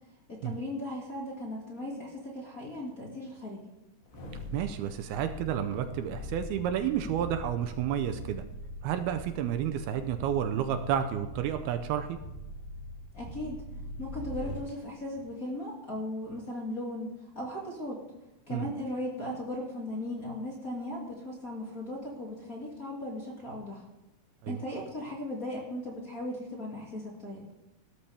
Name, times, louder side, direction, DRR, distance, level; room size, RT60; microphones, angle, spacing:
voice 1, 0.4-3.6 13.1-13.6 14.0-18.0 18.5-23.8 24.5-27.4, left 1 dB, 25° left, -5 dB, 2.1 m, -37 dB
sound 1, 4.0-14.7 15.1-15.3, equal, 65° left, 4.8 m, -42 dB
voice 2, 4.5-8.4 8.8-12.2 18.5-18.7 24.4-24.6, right 9 dB, 80° right, 8 dB, 2.6 m, -31 dB
17.0 x 13.0 x 3.5 m, 0.95 s
omnidirectional pair, 4.7 m